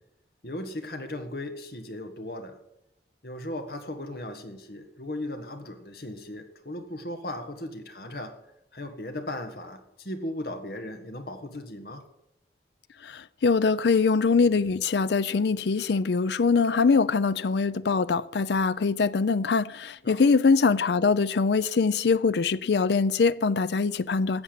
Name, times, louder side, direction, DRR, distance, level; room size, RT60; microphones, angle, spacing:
voice 1, 0.4-2.6 3.2-8.4 8.7-12.0 20.0-20.2, left 1 dB, 60° left, 1.7 m, -37 dB
voice 2, 13.0-24.4, left 4 dB, 75° left, 0.5 m, -23 dB
14.0 x 7.2 x 8.7 m
head